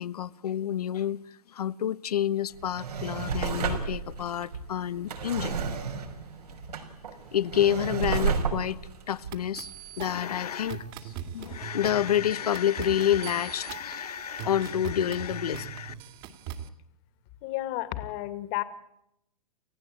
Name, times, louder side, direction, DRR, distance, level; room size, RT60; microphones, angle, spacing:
voice 1, 0.0-5.5 7.3-8.8 9.1-15.9, left 10 dB, 80° left, 1.2 m, -29 dB
Drawer open or close, 2.5-10.2 10.7-10.8, right 5 dB, 85° right, 5.5 m, -32 dB
sound 1, 9.3-16.7, right 9 dB, 40° right, 2.4 m, -41 dB
voice 2, 17.4-18.6, left 16 dB, 35° left, 2.3 m, -32 dB
29.5 x 15.0 x 8.7 m
hypercardioid pair, 145°, 19 cm